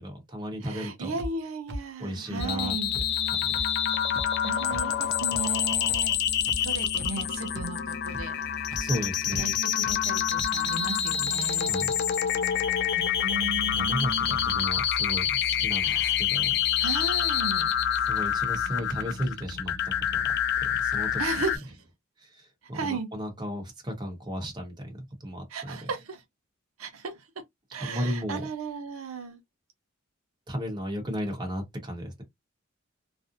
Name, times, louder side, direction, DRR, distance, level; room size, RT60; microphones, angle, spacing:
voice 1, 0.0-1.1 2.0-2.8 3.3-3.5 8.7-9.4 11.6-11.9 13.7-16.6 18.1-20.2 20.6-21.4 22.2-25.9 27.8-28.5 30.5-32.2, equal, 20° right, 0.9 m, -34 dB
voice 2, 0.6-2.9 3.3-3.9 4.4-6.2 6.6-8.4 9.3-11.9 12.9-14.6 15.8-16.2 16.8-17.8 21.2-21.7 22.7-23.1 25.5-26.2 26.8-27.1 27.7-29.4, right 3 dB, 90° right, 0.6 m, -36 dB
sound 1, 1.2-1.3 1.7-1.8 2.3-2.5 2.9-3.0 3.5-3.6 4.1-4.2 4.7-4.8 5.3-5.4 5.9-6.0 6.5-6.6 7.0-7.2 7.5-7.6 8.1-8.2 8.7-8.8 9.3-9.4 9.8-9.9 10.4-10.5, equal, 55° right, 0.7 m, -36 dB
sound 2, 2.4-21.6, left 9 dB, 55° left, 0.4 m, -27 dB
2.5 x 2.1 x 2.6 m
head